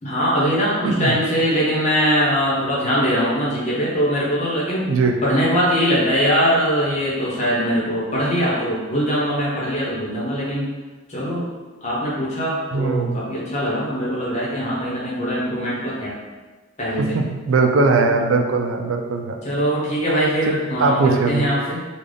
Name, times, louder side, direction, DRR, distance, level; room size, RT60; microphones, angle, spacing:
voice 1, 0.0-4.9 5.2-10.7 11.1-11.5 11.8-16.1 16.8-17.2 19.4-21.8, equal, 35° left, -7 dB, 1.0 m, -21 dB
voice 2, 12.7-13.2 17.1-19.4 20.8-21.5, right 3 dB, 85° right, 3 dB, 0.4 m, -19 dB
3.8 x 2.4 x 3.3 m, 1.2 s
head